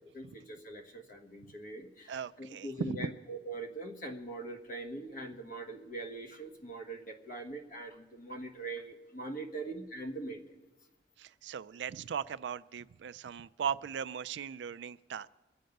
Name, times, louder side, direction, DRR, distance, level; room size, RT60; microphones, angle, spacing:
voice 1, 0.1-10.4, right 2 dB, 50° left, 4 dB, 1.4 m, -42 dB
voice 2, 2.1-3.1 11.2-15.3, right 7 dB, 75° right, 16 dB, 0.4 m, -38 dB
23.0 x 7.8 x 5.3 m, 1.1 s
head